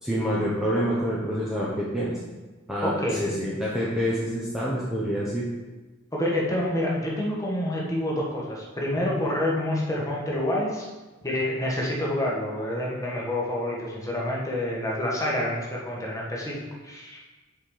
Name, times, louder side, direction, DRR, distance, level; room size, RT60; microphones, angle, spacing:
voice 1, 0.0-2.2 2.7-5.5 9.0-9.1, equal, ahead, -7 dB, 1.0 m, -27 dB
voice 2, 2.8-3.4 6.1-10.9 11.2-17.2, left 1 dB, 15° left, -4 dB, 1.6 m, -28 dB
6.3 x 5.0 x 5.6 m, 1.2 s
head